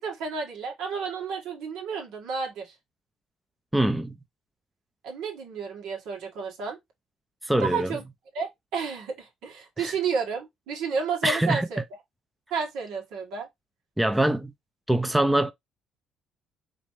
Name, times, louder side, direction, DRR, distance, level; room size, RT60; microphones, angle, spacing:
voice 1, 0.0-2.7 5.0-6.8 7.6-8.0 8.3-11.8 12.5-13.5, right 5 dB, 80° right, 1.9 m, -31 dB
voice 2, 3.7-4.2 7.4-8.0 9.8-9.9 11.2-11.7 14.0-14.5 14.9-15.5, right 1 dB, 5° right, 0.5 m, -23 dB
5.1 x 3.1 x 3.2 m
cardioid pair, 125°, 0 cm